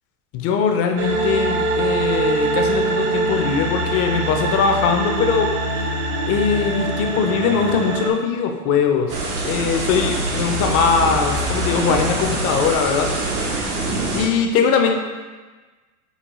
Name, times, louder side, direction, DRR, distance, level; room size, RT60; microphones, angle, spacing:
voice 1, 0.3-5.5 6.3-9.2 9.4-13.1 14.1-15.0, left 6 dB, 35° left, 4 dB, 0.5 m, -20 dB
sound 1, 1.0-8.1, right 2 dB, 55° right, 0.6 m, -23 dB
sound 2, 9.1-14.3, right 1 dB, 80° right, 1.1 m, -24 dB
5.4 x 2.2 x 3.0 m, 1.3 s
hypercardioid pair, 95°, 44 cm